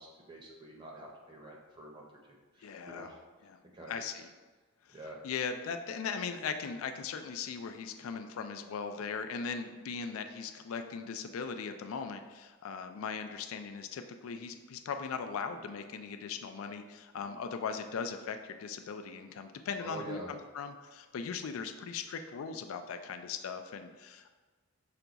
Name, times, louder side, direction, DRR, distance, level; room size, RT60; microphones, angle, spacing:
voice 1, 0.0-2.0 2.5-3.2 3.7-4.0 4.9-5.2 19.8-20.3, right 2 dB, 25° right, -1 dB, 0.6 m, -46 dB
voice 2, 2.6-3.1 3.4-3.6 3.9-4.3 4.9-5.0 5.2-24.3, left 5 dB, 85° left, 7 dB, 0.4 m, -39 dB
5.8 x 2.3 x 3.9 m, 1.3 s
head